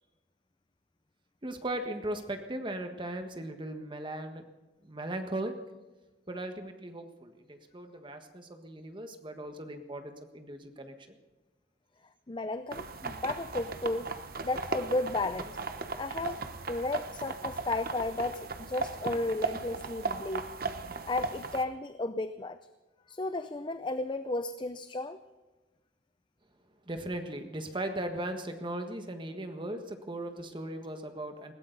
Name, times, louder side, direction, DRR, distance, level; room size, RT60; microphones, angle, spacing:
voice 1, 1.4-4.4 4.8-5.5 6.3-11.2 26.9-31.5, right 1 dB, 25° right, 6 dB, 1.5 m, -38 dB
voice 2, 12.3-14.1 14.4-15.6 16.0-16.4 16.7-20.5 21.1-22.6 23.1-25.2, left 2 dB, 25° left, 10 dB, 0.5 m, -33 dB
sound 1, 12.7-21.6, right 3 dB, 55° right, 1.0 m, -37 dB
20.5 x 16.5 x 4.0 m, 1.2 s
head